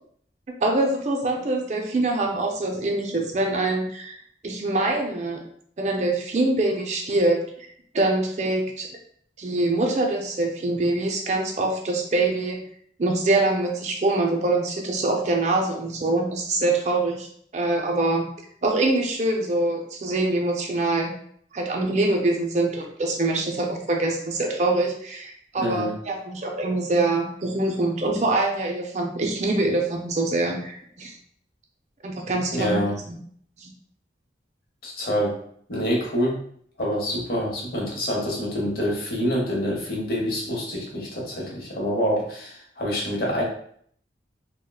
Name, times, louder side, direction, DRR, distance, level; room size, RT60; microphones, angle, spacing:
voice 1, 0.6-4.2 4.4-5.4 5.8-7.7 7.9-8.9 9.4-12.6 13.0-17.3 17.5-18.2 18.6-21.1 21.5-31.2 32.0-32.8 33.1-33.2 33.6-33.7, right 2 dB, 40° right, 2 dB, 0.5 m, -24 dB
voice 2, 25.6-25.9 32.5-33.0 34.8-35.3 35.7-36.4 36.8-43.4, equal, 55° left, -3 dB, 0.9 m, -26 dB
3.5 x 2.1 x 2.3 m, 0.63 s
head